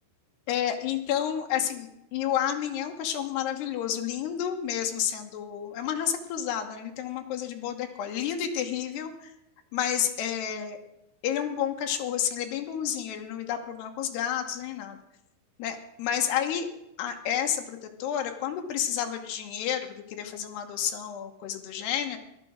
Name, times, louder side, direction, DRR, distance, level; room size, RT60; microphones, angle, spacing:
voice 1, 0.5-9.3 9.7-10.8 11.2-15.0 15.6-16.7 17.0-22.2, left 9 dB, 70° left, 5 dB, 2.8 m, -30 dB
15.0 x 11.5 x 6.3 m, 0.82 s
omnidirectional pair, 5.8 m